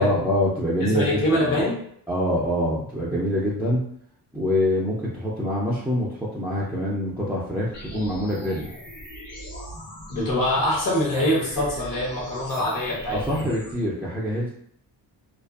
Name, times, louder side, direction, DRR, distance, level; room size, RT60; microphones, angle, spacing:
voice 1, 0.0-1.6 2.1-3.8 4.3-8.7 13.1-14.5, left 1 dB, 5° right, -7 dB, 0.4 m, -25 dB
voice 2, 0.8-1.8 10.1-13.4, left 1 dB, 45° left, -4 dB, 1.1 m, -24 dB
sound 1, 7.7-13.7, equal, 70° left, 1.3 m, -40 dB
2.5 x 2.3 x 2.3 m, 0.68 s
cardioid pair, 90°, 44 cm